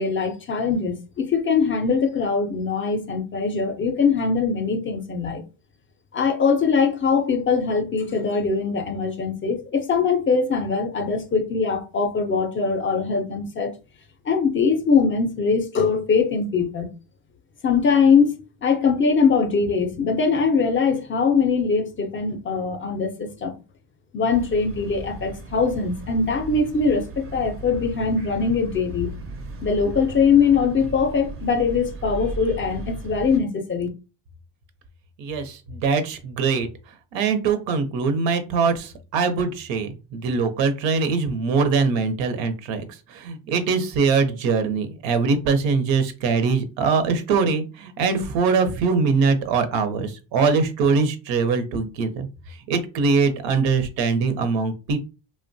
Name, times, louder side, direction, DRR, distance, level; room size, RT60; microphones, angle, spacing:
voice 1, 0.0-5.4 6.1-13.7 14.3-16.9 17.6-18.3 18.6-23.5 24.1-29.1 29.6-33.9, left 5 dB, 30° left, 0.4 m, -22 dB
sound 1, 24.3-33.4, right 2 dB, 35° right, 0.4 m, -37 dB
voice 2, 35.2-36.7 37.1-42.8 43.1-52.3 52.7-55.0, right 5 dB, 85° right, 0.7 m, -22 dB
2.9 x 2.1 x 2.6 m
cardioid pair, 120°, 44 cm